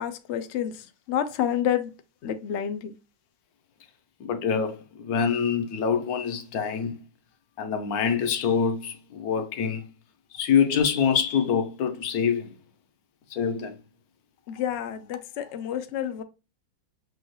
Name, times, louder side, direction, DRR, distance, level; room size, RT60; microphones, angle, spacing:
voice 1, 0.0-1.9 2.2-2.9 14.5-16.2, left 10 dB, 85° left, 0.6 m, -29 dB
voice 2, 4.2-7.0 7.6-9.9 10.3-12.5 13.3-13.8, left 7 dB, 70° left, 1.0 m, -25 dB
6.3 x 2.3 x 3.0 m
omnidirectional pair, 1.9 m